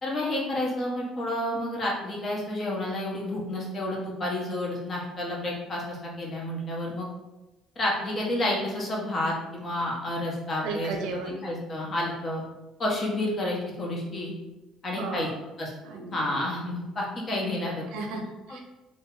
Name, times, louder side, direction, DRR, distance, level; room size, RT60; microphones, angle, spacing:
voice 1, 0.0-7.1 7.8-10.9 11.4-12.4 12.8-14.3 14.8-15.3 15.6-15.7 16.1-17.8 18.5-18.6, left 1 dB, 35° left, -2 dB, 1.1 m, -30 dB
voice 2, 10.6-11.4 15.0-15.3 15.8-16.4 17.9-18.6, right 3 dB, 90° right, 3 dB, 0.7 m, -34 dB
3.3 x 3.1 x 3.8 m, 1.0 s
cardioid pair, 135°, 0 cm